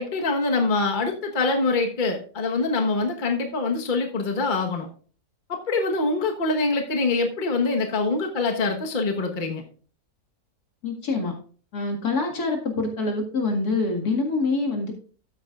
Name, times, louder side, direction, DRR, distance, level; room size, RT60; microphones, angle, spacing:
voice 1, 0.0-4.9 5.5-9.6, left 3 dB, 35° left, 3 dB, 1.3 m, -24 dB
voice 2, 10.8-11.3 11.7-14.9, left 3 dB, 70° left, 2 dB, 2.5 m, -25 dB
13.0 x 8.6 x 2.4 m, 0.41 s
omnidirectional pair, 1.7 m